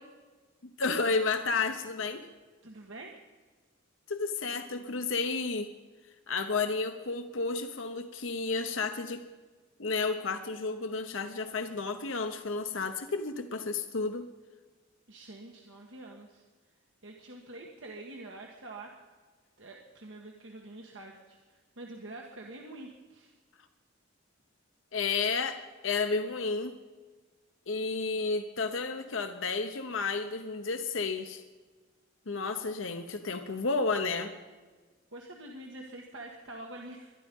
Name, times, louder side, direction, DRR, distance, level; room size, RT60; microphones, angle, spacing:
voice 1, 0.8-2.3 4.1-5.7 6.3-9.2 9.8-14.3 24.9-26.7 27.7-31.4 32.3-34.3, left 4 dB, 75° left, 7 dB, 0.9 m, -31 dB
voice 2, 2.6-3.1 15.1-16.4 17.0-18.9 19.6-23.3 35.1-37.1, right 2 dB, 70° right, 0 dB, 1.6 m, -46 dB
22.0 x 11.5 x 5.4 m, 1.4 s
head